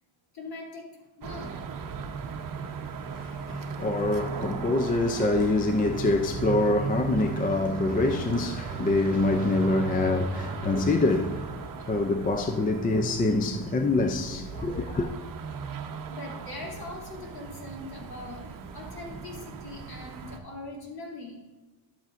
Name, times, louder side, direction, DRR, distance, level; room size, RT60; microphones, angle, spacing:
voice 1, 0.3-1.6 16.1-21.4, left 2 dB, 50° left, 2.8 m, -41 dB
sound 1, 1.2-20.4, right 5 dB, 40° right, 0.8 m, -37 dB
voice 2, 3.1-15.1, left 2 dB, 20° left, 0.4 m, -26 dB
11.5 x 8.1 x 2.5 m
cardioid pair, 125°, 49 cm